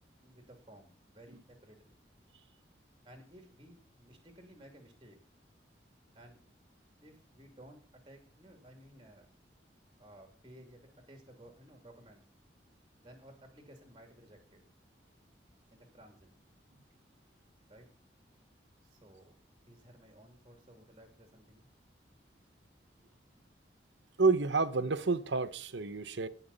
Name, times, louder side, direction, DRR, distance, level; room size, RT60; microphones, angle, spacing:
voice 1, 0.2-2.0 3.0-5.2 6.1-6.4 7.0-9.3 10.0-12.2 13.0-14.6 15.7-16.3 17.7-17.9 18.8-21.7, right 1 dB, 25° right, 2.7 m, -56 dB
voice 2, 24.2-26.3, right 4 dB, 80° right, 0.9 m, -29 dB
17.0 x 5.9 x 4.1 m
head